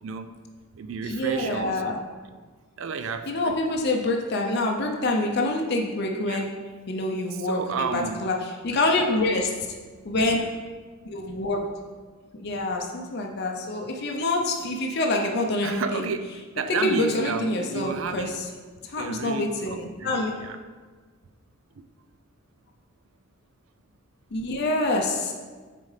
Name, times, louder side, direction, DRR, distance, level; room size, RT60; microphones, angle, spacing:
voice 1, 0.0-0.4 0.7-2.0 2.8-3.5 6.2-6.4 7.3-8.3 15.6-18.4 19.0-20.6, right 5 dB, 65° right, 9 dB, 0.4 m, -32 dB
voice 2, 1.0-2.0 3.3-6.5 6.9-9.5 10.0-10.5 11.0-11.6 12.3-16.1 16.8-18.4 18.8-20.3 24.3-25.3, left 2 dB, 50° left, 1 dB, 0.6 m, -26 dB
7.1 x 4.2 x 3.3 m, 1.5 s
head